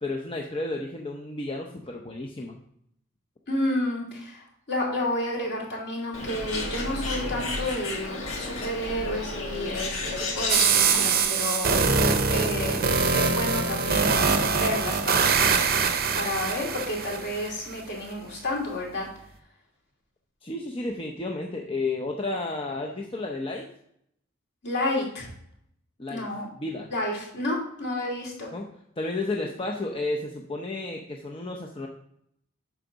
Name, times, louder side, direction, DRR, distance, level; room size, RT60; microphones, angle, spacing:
voice 1, 0.0-2.6 20.4-23.7 26.0-26.9 28.5-28.7 29.0-31.9, left 2 dB, 25° left, 1 dB, 0.7 m, -32 dB
voice 2, 3.5-11.8 12.2-12.9 13.1-15.3 16.1-19.1 24.6-25.3 26.1-26.5 26.9-28.5, left 1 dB, 55° left, -2 dB, 2.7 m, -30 dB
Bird, 6.1-11.2, left 2 dB, 75° left, 1.6 m, -32 dB
sound 1, 10.5-17.5, right 5 dB, 45° right, 0.7 m, -23 dB
8.2 x 6.1 x 3.9 m, 0.72 s
head